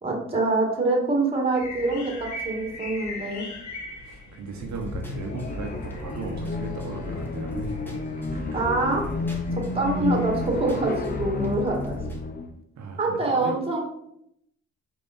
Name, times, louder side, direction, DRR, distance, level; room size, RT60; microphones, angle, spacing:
voice 1, 0.0-3.5 8.5-9.0 9.5-11.9 13.0-13.8, right 2 dB, 20° right, 0 dB, 2.1 m, -25 dB
sound 1, 1.5-11.5, left 2 dB, 70° left, 1.8 m, -42 dB
voice 2, 4.0-8.0 8.3-8.6 12.8-13.5, right 4 dB, 65° right, 1 dB, 1.1 m, -36 dB
sound 2, 4.5-12.2, left 1 dB, 5° left, 1.7 m, -38 dB
sound 3, 4.9-12.5, left 3 dB, 30° left, 0.9 m, -31 dB
5.3 x 5.1 x 4.3 m, 0.76 s
cardioid pair, 90°, 30 cm